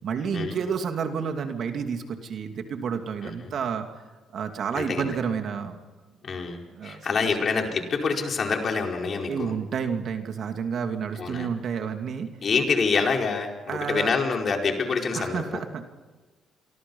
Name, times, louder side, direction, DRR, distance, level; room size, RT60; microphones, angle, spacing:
voice 1, 0.0-3.8 4.3-5.8 6.7-7.3 9.3-12.3 13.7-14.1 15.1-15.9, right 6 dB, 60° right, 5 dB, 2.7 m, -30 dB
voice 2, 3.2-3.5 4.7-5.2 6.2-9.5 11.1-11.5 12.4-15.6, left 4 dB, 50° left, 2 dB, 4.8 m, -26 dB
29.0 x 23.5 x 5.6 m, 1.3 s
cardioid pair, 90°, 0 cm